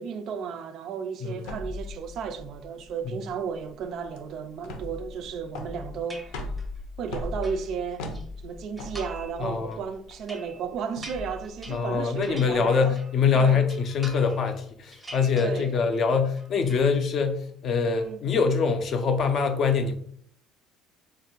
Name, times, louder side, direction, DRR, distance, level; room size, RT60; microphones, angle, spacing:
voice 1, 0.0-6.4 7.0-8.1 8.4-13.0 13.3-13.6 15.3-15.7 17.9-18.2, right 6 dB, 50° right, 0.3 m, -34 dB
sound 1, 1.4-12.6, left 2 dB, 85° left, 0.7 m, -39 dB
sound 2, 6.1-6.8 7.2-8.2 8.8-9.4 9.7-13.2 13.5-14.6 14.9-16.0 16.2-16.9, right 2 dB, 10° right, 0.6 m, -46 dB
voice 2, 9.4-9.8 11.7-20.0, left 5 dB, 40° left, 0.4 m, -24 dB
3.1 x 2.5 x 4.4 m
cardioid pair, 160°, 0 cm